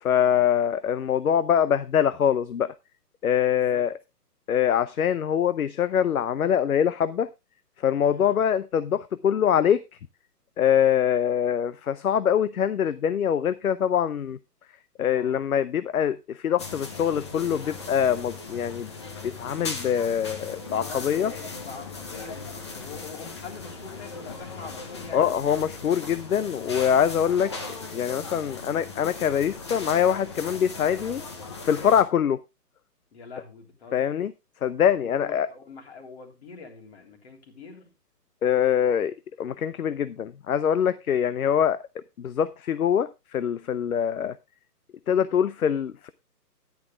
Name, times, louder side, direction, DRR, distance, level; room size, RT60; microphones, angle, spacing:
voice 1, 0.0-2.7 3.2-3.9 4.5-7.3 7.8-9.8 10.6-14.4 15.0-18.9 19.2-21.3 25.1-27.5 27.9-31.2 31.6-32.4 33.9-34.3 34.6-35.5 38.4-41.8 42.2-44.4 45.1-46.1, left 9 dB, 60° left, 0.7 m, -24 dB
voice 2, 3.4-3.9 8.1-8.4 15.1-15.4 20.6-25.4 33.1-34.2 35.0-37.9, left 5 dB, 40° left, 3.5 m, -44 dB
sound 1, 16.6-32.0, left 4 dB, 15° left, 0.7 m, -38 dB
14.0 x 10.5 x 2.3 m
figure-of-eight pair, 145°, 49 cm